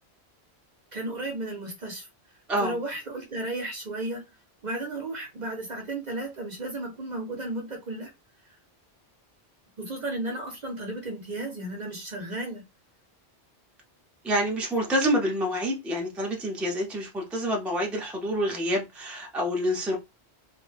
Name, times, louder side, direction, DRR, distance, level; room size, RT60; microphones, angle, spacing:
voice 1, 0.9-2.1 2.6-4.2 4.6-8.1 8.4-8.5 9.8-12.6, right 2 dB, 45° right, 0.8 m, -34 dB
voice 2, 14.2-20.0, equal, ahead, 0.6 m, -27 dB
2.5 x 2.2 x 3.2 m
omnidirectional pair, 1.1 m